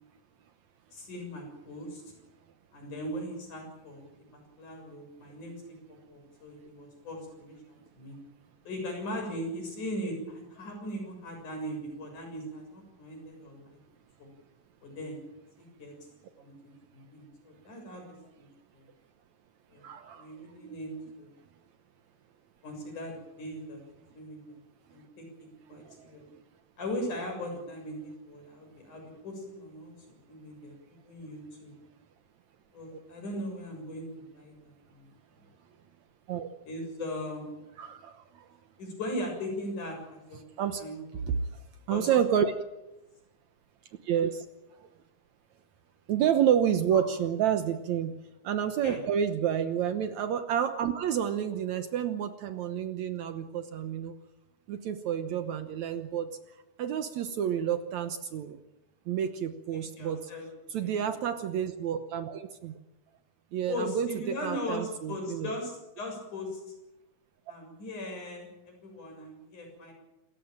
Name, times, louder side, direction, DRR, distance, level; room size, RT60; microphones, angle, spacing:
voice 1, 0.9-2.0 2.7-4.0 4.3-8.2 8.6-13.8 14.2-14.3 14.8-15.2 15.6-15.9 16.4-18.5 18.7-18.8 19.7-19.9 20.2-20.9 21.2-21.3 22.6-23.8 24.1-24.6 24.9-26.2 26.8-29.9 30.3-31.7 32.7-34.1 34.3-35.1 35.4-35.5 36.6-37.5 38.8-41.3 41.9-42.2 46.9-47.1 48.8-49.0 59.7-60.5 60.8-61.0 63.7-66.7 67.5-69.9, left 1 dB, 80° left, 2 dB, 8.5 m, -39 dB
voice 2, 19.8-20.3 20.6-20.8 36.3-36.5 37.8-38.1 40.6-40.8 41.9-42.5 44.1-44.4 46.1-48.1 48.4-54.1 54.7-56.3 56.8-58.6 59.1-60.2 60.7-62.7 63.5-64.1 64.4-65.5, right 9 dB, 70° right, 9 dB, 2.3 m, -29 dB
27.5 x 15.0 x 8.9 m, 0.98 s
omnidirectional pair, 3.5 m